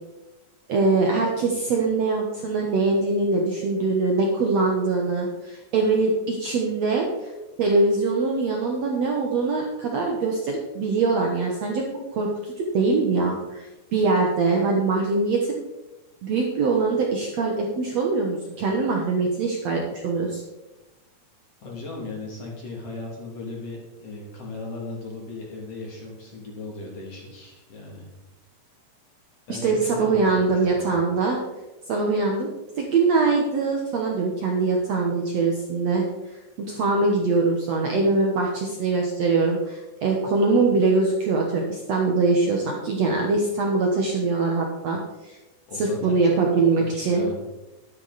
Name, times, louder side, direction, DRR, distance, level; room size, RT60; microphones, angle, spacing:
voice 1, 0.7-7.3 7.6-15.6 16.2-20.4 29.5-31.4 31.9-32.5 32.8-45.4 45.7-47.3, right 3 dB, 80° right, 0 dB, 1.5 m, -23 dB
voice 2, 21.6-28.1 29.5-30.9 45.7-47.4, left 2 dB, 40° left, -2 dB, 3.2 m, -37 dB
12.0 x 11.0 x 4.1 m, 1.1 s
omnidirectional pair, 4.8 m